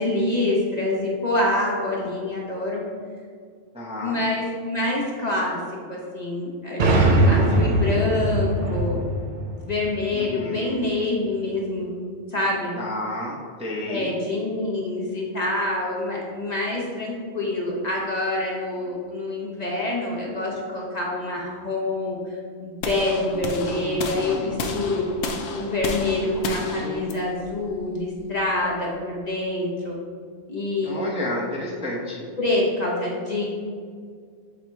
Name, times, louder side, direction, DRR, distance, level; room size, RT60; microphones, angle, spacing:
voice 1, 0.0-2.8 4.0-5.6 5.9-7.0 7.3-9.0 9.7-12.0 12.3-12.7 13.8-22.2 22.6-25.1 25.5-30.0 30.5-31.1 32.4-33.5, left 2 dB, 35° left, -3 dB, 1.0 m, -26 dB
voice 2, 3.7-4.2 10.1-10.8 12.8-14.1 23.4-24.8 26.2-27.1 30.8-32.3, left 1 dB, 5° right, -4 dB, 0.7 m, -32 dB
sound 1, 6.8-10.5, right 1 dB, 50° right, 0.7 m, -21 dB
sound 2, 22.8-28.9, left 3 dB, 75° left, 1.0 m, -33 dB
7.4 x 2.9 x 4.6 m, 2.1 s
omnidirectional pair, 1.3 m